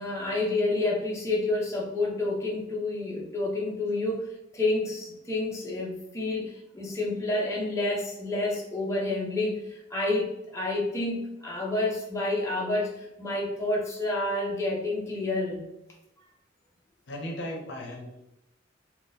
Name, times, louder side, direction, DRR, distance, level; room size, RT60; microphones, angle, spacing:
voice 1, 0.0-15.6, left 2 dB, 15° left, -5 dB, 0.7 m, -29 dB
voice 2, 17.1-18.2, left 1 dB, 65° left, 0 dB, 0.7 m, -36 dB
3.6 x 2.3 x 2.6 m, 0.87 s
head